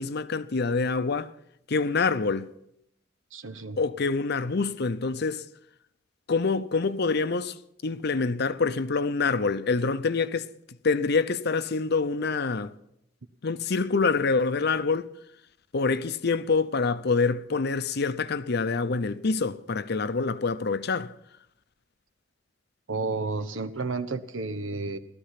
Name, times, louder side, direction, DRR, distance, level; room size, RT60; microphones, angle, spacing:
voice 1, 0.0-1.3 1.7-2.5 3.8-5.4 6.3-7.5 7.8-10.5 10.8-12.7 13.4-15.1 15.7-21.1, left 4 dB, 55° left, 0.7 m, -26 dB
voice 2, 3.3-3.8 22.9-25.0, right 3 dB, 85° right, 1.1 m, -31 dB
16.5 x 13.5 x 5.8 m
head